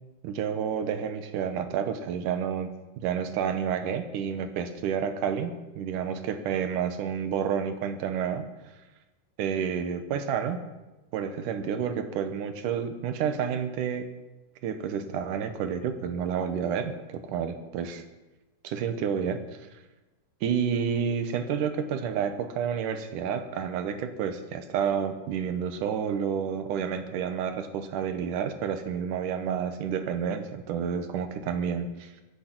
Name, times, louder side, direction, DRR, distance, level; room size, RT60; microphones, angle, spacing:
voice 1, 0.2-2.7 3.0-8.4 9.4-10.6 11.1-14.1 14.6-18.0 18.6-19.4 20.4-32.1, right 7 dB, 85° right, 9 dB, 2.7 m, -30 dB
23.5 x 8.6 x 6.1 m, 1.1 s
omnidirectional pair, 3.6 m